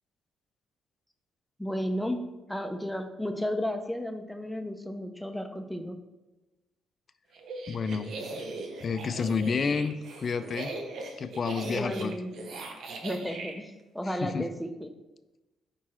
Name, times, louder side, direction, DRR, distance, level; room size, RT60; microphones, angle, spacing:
voice 1, 1.6-2.2 2.5-6.0 11.6-12.5 13.0-14.9, equal, 5° left, 6 dB, 0.6 m, -33 dB
sound 1, 7.3-13.5, right 2 dB, 70° right, 0.9 m, -39 dB
voice 2, 7.7-8.1 8.8-10.7 11.2-12.2 14.1-14.5, left 5 dB, 45° left, 12 dB, 0.4 m, -30 dB
4.7 x 4.5 x 4.3 m, 1.1 s
cardioid pair, 90°, 0 cm